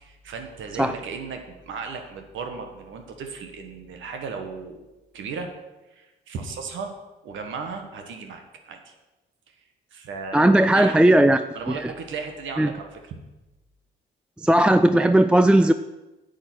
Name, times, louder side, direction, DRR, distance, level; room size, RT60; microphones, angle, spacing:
voice 1, 0.0-4.9 5.1-5.5 5.9-6.9 7.2-8.9 9.9-11.0 11.5-13.2, right 5 dB, 75° right, 5 dB, 1.5 m, -35 dB
voice 2, 10.3-11.4 11.7-11.9 12.6-12.7 14.4-15.7, right 1 dB, 5° right, 11 dB, 0.3 m, -17 dB
8.5 x 8.1 x 6.3 m, 1.1 s
cardioid pair, 90°, 20 cm